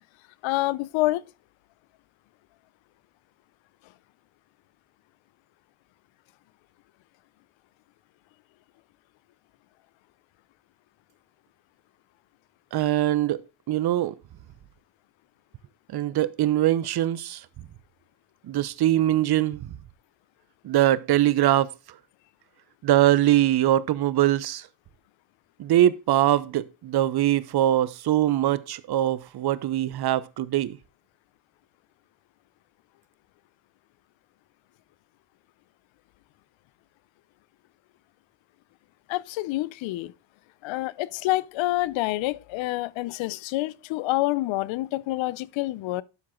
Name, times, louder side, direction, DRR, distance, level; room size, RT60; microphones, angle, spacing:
voice 1, 0.4-1.3 39.1-40.1 40.6-46.0, left 18 dB, 80° left, 0.7 m, -27 dB
voice 2, 12.7-13.4 13.7-14.1 15.9-17.4 18.5-19.7 20.6-21.7 22.8-24.6 25.6-30.8, right 13 dB, 55° right, 0.9 m, -22 dB
12.0 x 4.8 x 3.7 m
cardioid pair, 95°, 46 cm